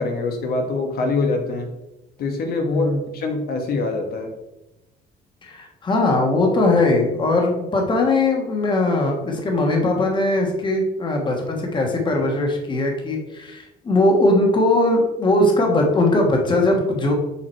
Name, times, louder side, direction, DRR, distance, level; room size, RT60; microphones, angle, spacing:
voice 1, 0.0-1.7 2.2-4.3, left 3 dB, 65° left, 3 dB, 1.2 m, -24 dB
voice 2, 2.7-3.0 5.4-17.1, left 2 dB, 30° left, 1 dB, 1.3 m, -20 dB
7.2 x 4.7 x 4.4 m, 0.97 s
cardioid pair, 155°, 17 cm